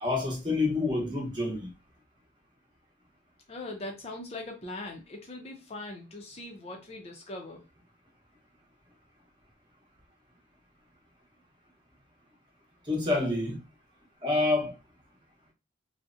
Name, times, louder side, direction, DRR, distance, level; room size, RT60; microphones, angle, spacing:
voice 1, 0.0-1.7 12.9-13.6 14.2-14.8, left 2 dB, 25° right, 0.7 m, -28 dB
voice 2, 3.5-7.6, left 2 dB, 35° left, 0.4 m, -41 dB
2.6 x 2.0 x 2.4 m
head